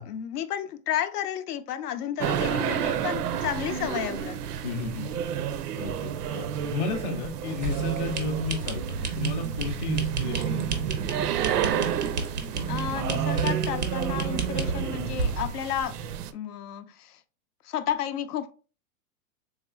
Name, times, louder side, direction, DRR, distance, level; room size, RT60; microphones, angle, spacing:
voice 1, 0.0-4.4 12.7-15.9 16.3-17.2 17.6-18.5, left 10 dB, 80° left, 0.6 m, -32 dB
sound 1, 2.2-16.3, right 9 dB, 90° right, 0.5 m, -31 dB
voice 2, 4.6-5.2 5.7-10.7, left 4 dB, 35° left, 0.4 m, -33 dB
sound 2, 7.6-15.5, right 6 dB, 35° right, 0.4 m, -31 dB
3.5 x 3.1 x 2.2 m
hypercardioid pair, 150°, 45 cm